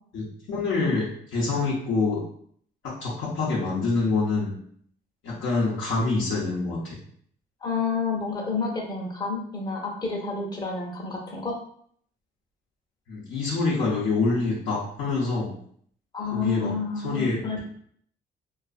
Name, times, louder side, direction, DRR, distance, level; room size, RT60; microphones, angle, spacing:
voice 1, 0.1-2.2 2.8-4.5 5.2-7.0 13.1-15.5 16.3-16.8 17.0-17.6, left 3 dB, 75° left, -6 dB, 0.7 m, -26 dB
voice 2, 7.6-11.6 16.1-17.6, left 4 dB, 20° left, -1 dB, 0.7 m, -29 dB
2.5 x 2.4 x 2.4 m, 0.62 s
cardioid pair, 90°, 20 cm